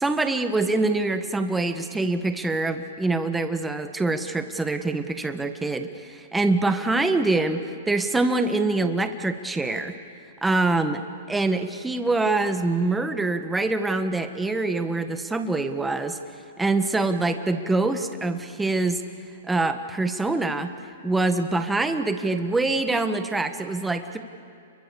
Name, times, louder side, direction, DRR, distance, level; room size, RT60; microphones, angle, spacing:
voice 1, 0.0-10.0 10.4-16.2 16.6-19.0 19.5-20.7 21.0-24.2, right 2 dB, 5° right, 8 dB, 1.5 m, -25 dB
29.5 x 23.5 x 7.0 m, 2.5 s
hypercardioid pair, 140°, 0 cm